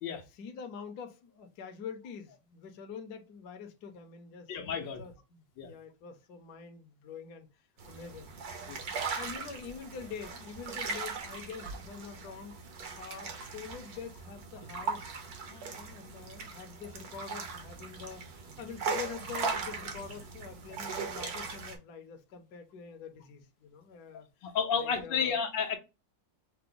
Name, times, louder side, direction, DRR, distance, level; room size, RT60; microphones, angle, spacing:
voice 1, 0.3-8.3 9.2-12.6 12.9-18.2 18.6-25.4, left 6 dB, 65° left, 1.2 m, -45 dB
voice 2, 4.5-5.0 5.6-5.7 8.7-8.8 24.4-25.8, left 6 dB, 80° left, 1.5 m, -31 dB
sound 1, 7.8-21.8, right 5 dB, 60° right, 1.5 m, -39 dB
5.7 x 2.1 x 3.8 m
omnidirectional pair, 2.0 m